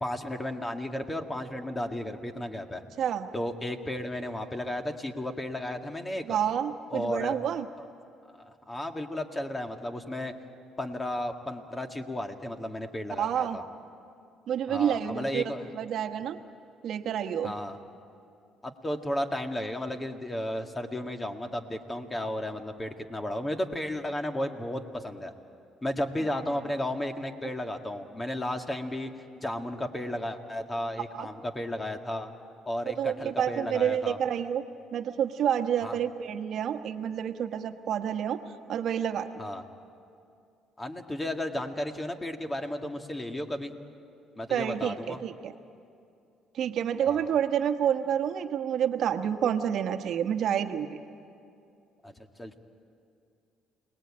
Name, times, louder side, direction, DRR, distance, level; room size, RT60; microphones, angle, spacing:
voice 1, 0.0-2.8 3.3-6.4 6.9-7.4 7.8-7.9 8.3-10.3 10.8-13.6 14.7-15.7 17.4-17.8 18.6-25.3 25.8-29.1 29.4-32.3 32.7-34.2 35.8-36.0 39.4-39.6 40.8-43.7 44.4-45.2 47.1-47.4 52.0-52.6, left 1 dB, 20° left, 5 dB, 2.0 m, -34 dB
voice 2, 3.0-3.3 6.2-7.7 13.2-13.6 14.5-15.4 15.8-16.4 16.8-17.5 31.1-31.3 33.0-38.4 38.7-39.3 44.5-45.5 46.5-51.0, right 9 dB, 65° right, 7 dB, 1.3 m, -29 dB
28.5 x 20.0 x 8.8 m, 2.5 s
supercardioid pair, 85°, 0 cm